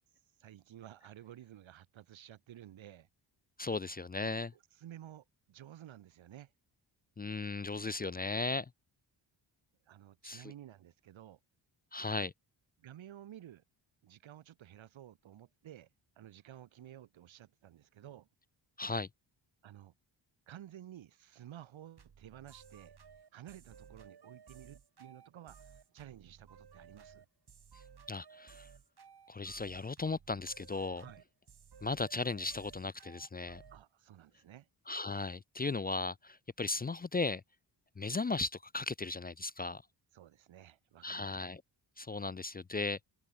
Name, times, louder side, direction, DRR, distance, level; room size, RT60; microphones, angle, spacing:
voice 1, 0.4-3.1 4.2-6.5 9.9-11.4 12.2-12.3 12.8-13.6 14.0-15.9 16.2-18.3 19.6-19.9 20.5-22.9 23.3-27.2 31.0-31.2 33.7-34.7 40.1-41.3, right 11 dB, 80° right, 1.5 m, -53 dB
voice 2, 3.6-4.5 7.2-8.7 10.2-10.5 11.9-12.3 18.8-19.1 28.1-28.7 29.3-31.1 31.8-33.6 34.9-37.4 38.0-39.8 41.0-41.6 42.0-43.0, left 3 dB, 20° left, 0.5 m, -36 dB
sound 1, 22.0-33.8, right 6 dB, 55° right, 7.2 m, -57 dB
cardioid pair, 90°, 46 cm